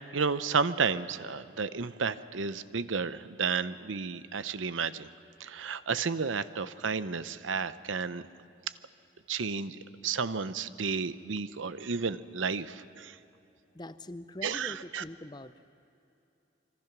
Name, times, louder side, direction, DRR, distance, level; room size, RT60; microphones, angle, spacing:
voice 1, 0.0-5.1 5.4-8.2 9.3-13.2 14.4-15.0, right 5 dB, 90° right, 14 dB, 0.7 m, -32 dB
voice 2, 13.7-15.5, left 1 dB, 20° left, 12 dB, 0.6 m, -43 dB
26.0 x 25.0 x 6.1 m, 2.7 s
head